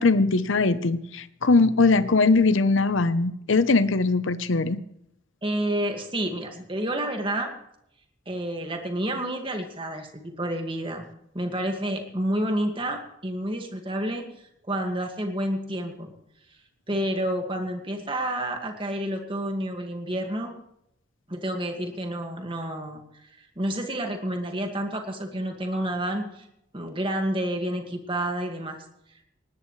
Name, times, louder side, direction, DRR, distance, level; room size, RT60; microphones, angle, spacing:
voice 1, 0.0-4.8, left 3 dB, 75° left, 14 dB, 0.8 m, -21 dB
voice 2, 5.4-7.5 8.3-11.0 11.3-14.2 14.6-16.1 16.9-20.5 21.3-26.5 26.7-28.8, right 1 dB, 25° right, 4 dB, 1.9 m, -29 dB
19.5 x 18.0 x 3.2 m, 0.78 s
head